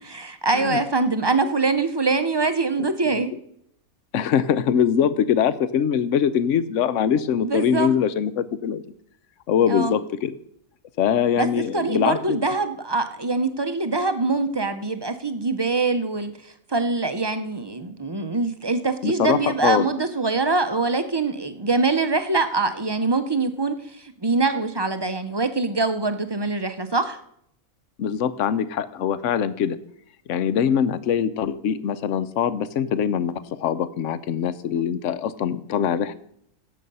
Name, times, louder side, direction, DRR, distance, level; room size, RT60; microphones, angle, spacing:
voice 1, 0.0-3.3 7.4-7.9 9.7-10.0 11.4-27.2, right 3 dB, 25° right, 9 dB, 0.6 m, -24 dB
voice 2, 2.8-3.4 4.1-8.8 9.5-10.3 11.0-12.4 19.0-19.9 28.0-29.8 30.3-36.2, left 8 dB, 65° left, 15 dB, 1.0 m, -23 dB
16.5 x 7.6 x 5.5 m, 0.71 s
omnidirectional pair, 1.5 m